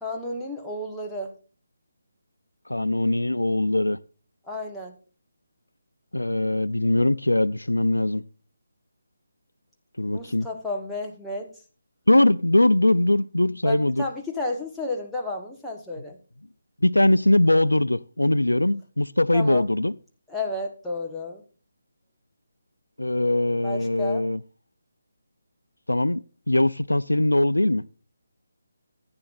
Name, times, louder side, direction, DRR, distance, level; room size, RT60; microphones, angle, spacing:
voice 1, 0.0-1.3 4.5-5.0 10.1-11.5 13.6-16.2 19.3-19.6 20.3-21.4 23.6-24.3, left 2 dB, 5° left, 1.1 m, -32 dB
voice 2, 2.7-4.0 6.1-8.2 10.0-10.5 12.1-14.0 16.8-19.9 23.0-24.4 25.9-27.8, left 1 dB, 85° left, 0.4 m, -21 dB
15.0 x 9.7 x 2.5 m
figure-of-eight pair, 155°, 0 cm